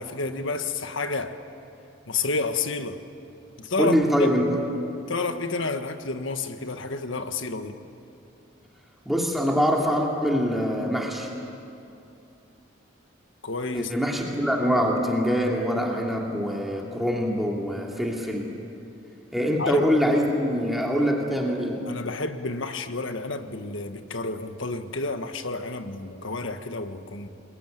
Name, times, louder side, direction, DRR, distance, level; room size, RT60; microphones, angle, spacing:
voice 1, 0.0-1.4 2.1-3.0 3.6-3.9 4.2-4.3 5.1-7.8 13.4-13.9 19.6-19.8 21.8-27.3, left 3 dB, 70° left, 8 dB, 1.5 m, -30 dB
voice 2, 3.8-4.6 9.0-11.3 13.7-18.5 19.3-21.9, equal, ahead, -1 dB, 2.7 m, -24 dB
28.0 x 21.5 x 9.2 m, 2.7 s
head